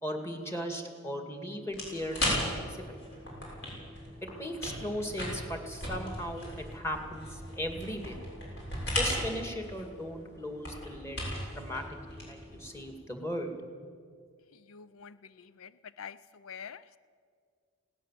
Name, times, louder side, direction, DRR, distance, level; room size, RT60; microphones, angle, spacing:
voice 1, 0.0-3.0 4.4-8.2 8.9-11.3 11.6-13.5, equal, 15° left, 4 dB, 2.1 m, -37 dB
sound 1, 1.7-12.9, left 1 dB, 55° left, 7.0 m, -37 dB
voice 2, 14.7-15.7 16.0-17.0, left 7 dB, 80° left, 15 dB, 0.5 m, -46 dB
20.0 x 17.5 x 7.5 m, 2.1 s
head